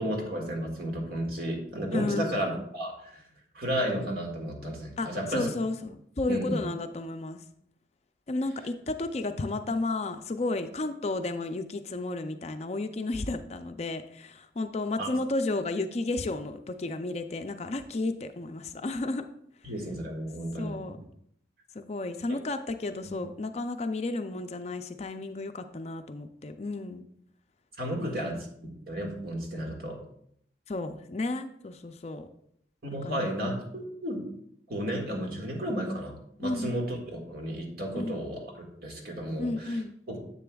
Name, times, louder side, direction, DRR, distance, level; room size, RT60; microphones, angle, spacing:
voice 1, 0.0-3.2 3.5-5.5 6.3-6.6 15.0-15.1 19.6-20.9 23.1-23.2 27.8-30.0 32.8-34.2 34.7-39.8 40.1-40.2, equal, 55° right, 1 dB, 1.8 m, -33 dB
voice 2, 1.9-2.4 5.0-7.4 8.3-19.2 20.6-21.0 21.7-27.0 28.0-28.4 30.7-32.3 33.0-33.2 36.4-36.8 37.9-38.2 39.4-40.0, left 2 dB, 35° left, 8 dB, 0.4 m, -32 dB
10.0 x 7.6 x 2.3 m, 0.69 s
head